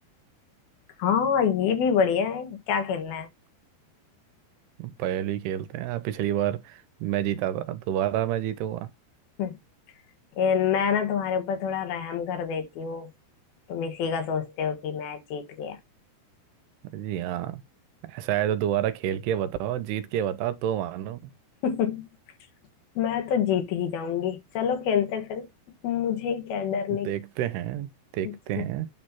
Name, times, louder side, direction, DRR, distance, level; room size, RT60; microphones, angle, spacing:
voice 1, 1.0-3.3 9.4-9.5 10.4-13.1 13.7-15.8 21.6-22.1 23.0-25.5 25.8-27.1 28.2-28.6, left 7 dB, 70° left, 3.2 m, -27 dB
voice 2, 4.8-8.9 16.9-17.6 18.0-21.2 27.0-28.9, right 11 dB, 85° right, 2.7 m, -29 dB
9.4 x 3.2 x 5.7 m
omnidirectional pair, 4.7 m